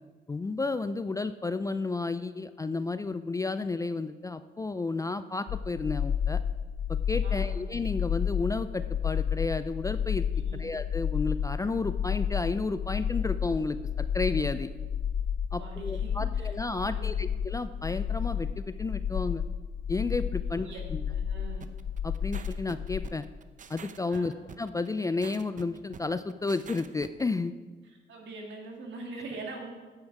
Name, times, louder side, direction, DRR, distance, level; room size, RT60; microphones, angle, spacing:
voice 1, 0.3-6.4 6.9-10.2 10.5-14.7 15.5-19.4 19.9-21.0 22.0-23.2 23.7-27.5, left 3 dB, 15° left, 12 dB, 0.3 m, -32 dB
sound 1, 5.5-23.1, left 8 dB, 65° left, 0.6 m, -31 dB
voice 2, 7.2-7.6 10.4-10.6 15.6-16.5 16.8-17.3 20.4-20.8 21.1-21.6 24.1-24.4 28.1-29.7, right 3 dB, 65° right, 0 dB, 2.3 m, -43 dB
sound 2, 21.6-27.2, right 7 dB, 40° right, 0.6 m, -47 dB
9.6 x 8.4 x 4.8 m, 1.3 s
cardioid pair, 90°, 20 cm